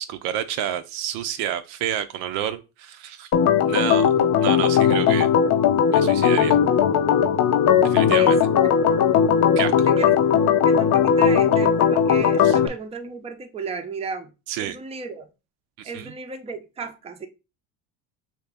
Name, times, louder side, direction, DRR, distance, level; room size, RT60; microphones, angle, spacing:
voice 1, 0.0-3.3 3.7-4.1 4.4-5.3 5.9-6.6 7.8-8.4 9.6-9.7 12.4-12.6 14.5-14.8 15.8-16.1, right 10 dB, 65° right, 0.6 m, -29 dB
Organ, 3.3-12.7, left 8 dB, 45° left, 0.5 m, -18 dB
voice 2, 8.1-8.7 9.9-14.3 14.6-15.3 15.8-17.3, right 4 dB, 15° right, 0.5 m, -35 dB
2.9 x 2.9 x 3.3 m
supercardioid pair, 85°, 42 cm